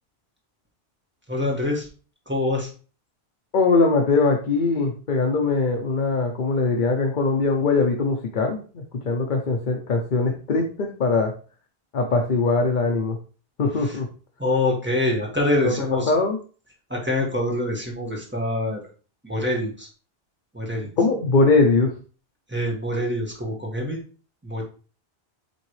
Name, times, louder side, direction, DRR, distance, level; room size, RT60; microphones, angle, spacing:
voice 1, 1.3-1.9 2.3-2.7 13.8-14.0 14.4-16.1 16.9-18.8 19.2-19.9 20.5-20.9 22.5-24.0 24.4-24.6, left 1 dB, 10° right, -2 dB, 1.8 m, -25 dB
voice 2, 3.5-11.3 11.9-13.2 13.6-14.1 15.6-15.7 16.1-16.4 21.0-21.9, left 3 dB, 50° left, 3 dB, 0.9 m, -21 dB
8.0 x 3.8 x 3.2 m, 0.39 s
omnidirectional pair, 1.1 m